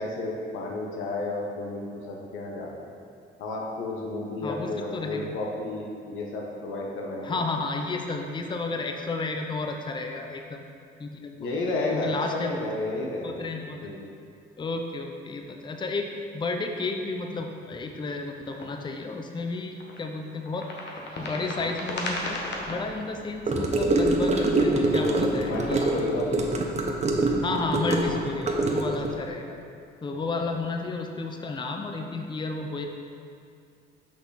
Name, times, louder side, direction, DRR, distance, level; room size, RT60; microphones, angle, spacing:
voice 1, 0.0-2.7 3.4-7.4 11.4-13.4 13.7-14.0 25.0-26.5 30.4-30.5, left 2 dB, 85° left, -1 dB, 1.1 m, -31 dB
voice 2, 4.4-5.3 7.2-10.6 11.0-11.5 11.9-12.5 13.2-13.8 14.6-20.7 21.2-22.4 22.7-26.0 27.4-29.6 30.0-32.9, left 3 dB, 25° left, 4 dB, 0.6 m, -32 dB
sound 1, 18.4-18.7 19.8-20.0 20.4-23.4 24.5-25.9 26.8-28.3, left 1 dB, 60° left, 1.2 m, -37 dB
Gurgling / Car passing by / Sink (filling or washing), 23.5-29.1, right 2 dB, 35° right, 0.9 m, -24 dB
6.0 x 5.9 x 4.1 m, 2.4 s
cardioid pair, 90°, 20 cm